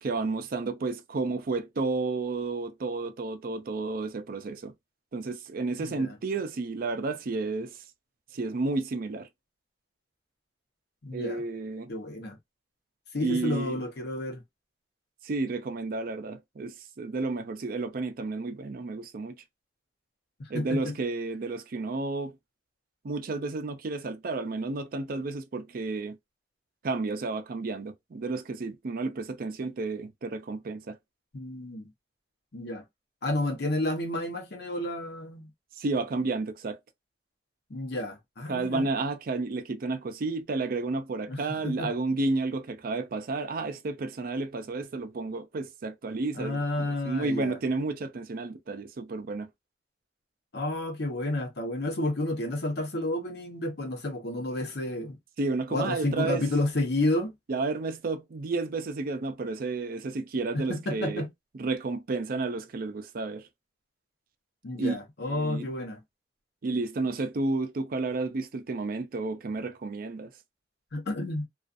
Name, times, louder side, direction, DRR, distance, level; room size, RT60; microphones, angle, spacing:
voice 1, 0.0-4.7 5.1-7.8 8.3-9.3 11.1-11.9 13.2-13.8 15.2-19.4 20.5-22.4 23.0-26.2 26.8-31.0 35.8-36.8 38.5-46.6 47.0-49.5 55.4-56.4 57.5-61.2 61.6-63.5 64.7-64.9 65.2-65.7 66.6-70.3, right 3 dB, 55° right, 0.4 m, -31 dB
voice 2, 5.8-6.2 11.0-11.4 11.9-12.4 13.1-14.4 20.4-20.9 31.3-31.9 32.5-32.8 33.2-35.5 37.7-38.9 41.3-41.9 46.3-47.6 50.5-55.2 55.7-57.3 60.5-61.3 64.6-66.0 70.9-71.5, left 1 dB, 65° left, 0.8 m, -31 dB
2.4 x 2.4 x 2.5 m
head